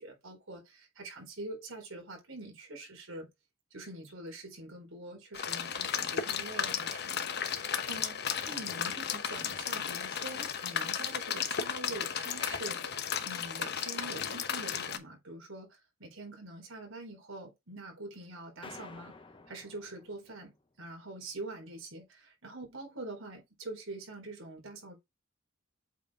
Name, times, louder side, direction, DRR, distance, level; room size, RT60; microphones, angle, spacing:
voice 1, 0.0-3.3 3.7-12.8 13.2-19.1 19.5-20.5 20.8-25.0, right 2 dB, 85° right, 4.1 m, -45 dB
sound 1, 5.3-15.0, left 7 dB, 55° left, 1.0 m, -34 dB
sound 2, 18.6-20.6, left 3 dB, 25° left, 1.1 m, -51 dB
8.1 x 4.6 x 3.6 m
head